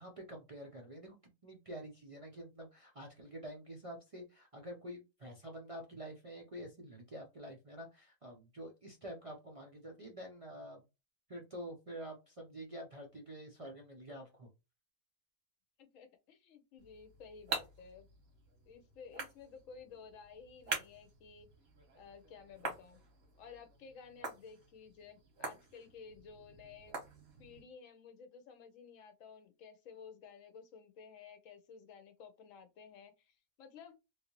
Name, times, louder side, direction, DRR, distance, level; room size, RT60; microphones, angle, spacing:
voice 1, 0.0-10.8 11.3-14.5, equal, 50° right, 0.4 m, -48 dB
voice 2, 15.8-18.1 18.7-21.5 21.9-23.0 23.4-27.0 27.4-33.9, left 6 dB, 70° left, 1.0 m, -54 dB
sound 1, 16.8-27.7, right 4 dB, 90° right, 1.4 m, -46 dB
3.1 x 2.6 x 2.9 m
omnidirectional pair, 1.4 m